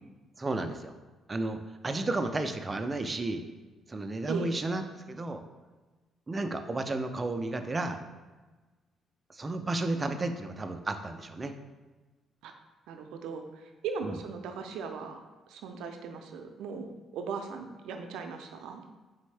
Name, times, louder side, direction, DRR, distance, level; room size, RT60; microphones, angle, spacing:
voice 1, 0.4-0.9 1.3-1.6 1.8-3.4 3.9-5.4 6.3-8.0 9.3-11.5 14.0-14.2, right 2 dB, 25° right, 7 dB, 0.4 m, -32 dB
voice 2, 12.9-15.2 15.5-18.8, right 5 dB, 90° right, 5 dB, 0.4 m, -38 dB
4.2 x 3.5 x 3.2 m, 1.2 s
cardioid pair, 90°, 0 cm